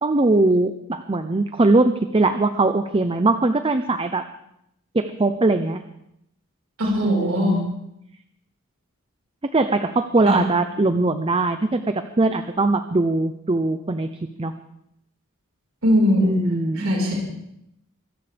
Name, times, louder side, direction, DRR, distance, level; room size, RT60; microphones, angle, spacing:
voice 1, 0.0-4.3 4.9-5.8 7.0-7.7 9.5-14.1 14.4-14.5 16.2-17.0, right 2 dB, 25° right, 9 dB, 0.6 m, -21 dB
voice 2, 6.8-7.7 10.2-10.4 15.8-16.4 16.8-17.2, left 1 dB, 65° right, -2 dB, 4.7 m, -20 dB
24.5 x 14.0 x 3.4 m, 0.79 s
head